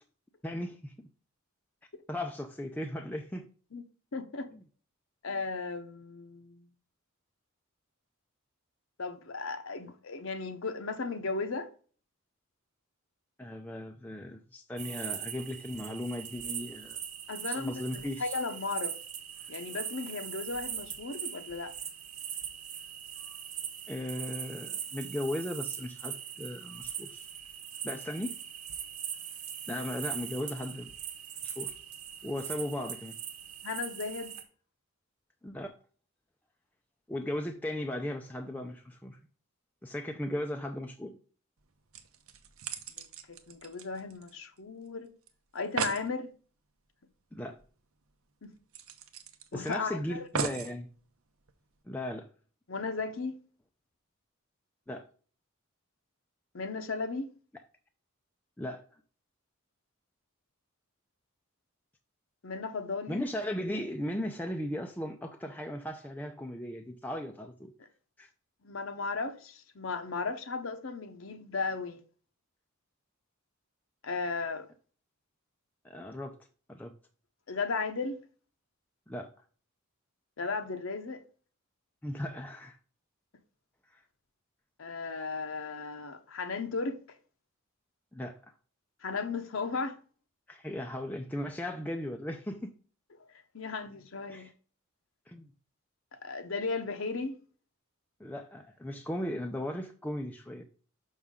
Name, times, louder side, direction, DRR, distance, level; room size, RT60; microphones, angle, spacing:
voice 1, 0.4-0.9 2.1-3.5 4.5-4.6 13.4-17.0 17.5-18.4 23.9-27.3 27.8-28.3 29.7-30.9 31.4-31.7 32.2-33.1 35.4-35.7 37.1-39.2 39.8-41.2 47.3-47.6 49.5-50.9 51.9-52.3 54.9-55.1 58.6-58.9 63.1-67.7 68.2-68.3 75.8-76.4 76.7-76.9 79.1-79.3 82.0-82.8 83.9-84.0 88.1-88.4 90.5-92.7 94.3-94.5 95.3-95.5 98.2-100.6, left 1 dB, 5° left, 0.4 m, -37 dB
voice 2, 4.1-4.5 5.2-6.7 9.0-11.7 17.3-18.9 19.5-21.7 33.6-34.3 43.0-45.1 45.5-46.3 48.4-48.5 49.5-50.2 52.7-53.4 56.5-57.3 62.4-63.2 68.6-72.0 74.0-74.7 77.5-78.2 80.4-81.2 84.8-87.0 89.0-90.0 93.5-94.5 96.2-97.4, left 4 dB, 60° left, 0.7 m, -35 dB
sound 1, 14.8-34.4, right 9 dB, 90° right, 1.2 m, -41 dB
sound 2, 41.6-41.7 41.9-44.6 44.9-45.0 45.3-45.4 45.6-46.1 47.6-47.7 48.0-48.1 48.7-49.7 50.3-50.8 51.5-51.6, right 6 dB, 70° right, 0.8 m, -37 dB
6.0 x 5.5 x 3.6 m
head